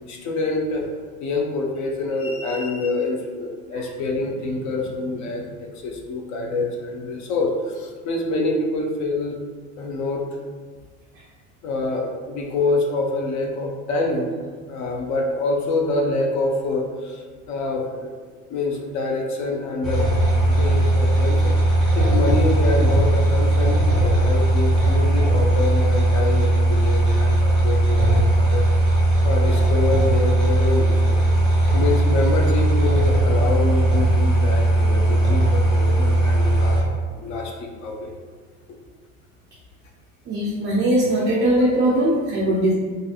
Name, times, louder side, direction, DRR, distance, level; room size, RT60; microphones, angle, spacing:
voice 1, 0.0-0.9 1.2-9.4 9.8-10.2 11.6-14.3 14.7-18.1 18.5-20.1 20.4-21.5 22.0-28.6 29.2-31.2 31.7-38.1, left 2 dB, 50° left, 0 dB, 0.5 m, -26 dB
sound 1, 19.8-36.8, right 1 dB, ahead, 1.0 m, -18 dB
voice 2, 40.3-42.7, right 1 dB, 30° right, -4 dB, 0.4 m, -20 dB
2.6 x 2.5 x 2.3 m, 1.5 s
supercardioid pair, 115°, 39 cm